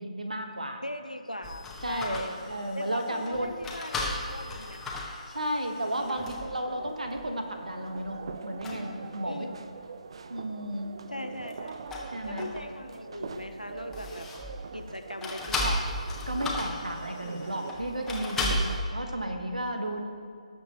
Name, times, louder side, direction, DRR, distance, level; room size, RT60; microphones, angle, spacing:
voice 1, 0.0-0.8 1.8-3.5 5.3-9.5 10.3-11.1 12.1-12.5 15.6-15.8 16.3-20.0, right 1 dB, 75° right, 5 dB, 1.3 m, -33 dB
voice 2, 0.8-2.4 2.7-4.9 6.1-6.3 9.2-9.6 11.1-11.8 12.2-14.3 14.7-15.8, left 1 dB, 90° left, 8 dB, 0.8 m, -39 dB
sound 1, 1.4-6.6 7.1-7.3 7.9-8.3 8.6-8.8 11.4-12.9 13.2-14.7 15.2-18.8, left 1 dB, 5° left, 1.0 m, -35 dB
sound 2, 5.9-18.8, right 4 dB, 45° right, 0.5 m, -43 dB
18.0 x 7.3 x 3.0 m, 2.3 s
figure-of-eight pair, 140°, 4 cm